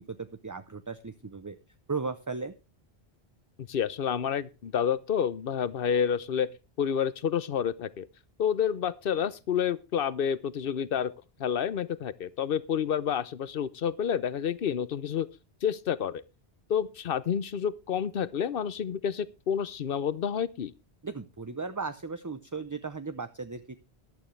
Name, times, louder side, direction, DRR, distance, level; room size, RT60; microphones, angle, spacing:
voice 1, 0.0-1.6 1.9-2.5 21.0-23.7, right 4 dB, 20° right, 0.6 m, -36 dB
voice 2, 3.7-6.5 6.8-8.1 8.4-11.1 11.4-15.3 15.6-16.2 16.7-20.7, left 8 dB, 60° left, 0.9 m, -29 dB
14.0 x 11.5 x 3.3 m
omnidirectional pair, 1.1 m